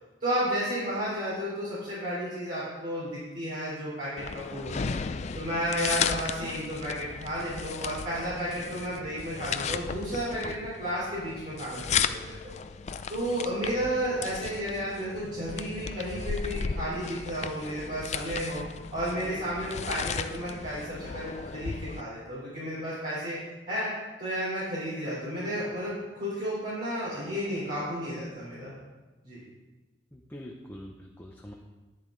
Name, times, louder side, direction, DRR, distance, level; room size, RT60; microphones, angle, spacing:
voice 1, 0.2-5.0 5.3-12.5 13.1-18.6 18.9-23.4 23.7-23.9 24.2-28.7 29.2-29.4, equal, 50° right, -10 dB, 4.0 m, -32 dB
sound 1, 4.2-22.0, left 6 dB, 40° left, 0.4 m, -35 dB
voice 2, 30.1-31.5, equal, 10° left, -1 dB, 0.7 m, -44 dB
10.5 x 10.5 x 3.9 m, 1.2 s
head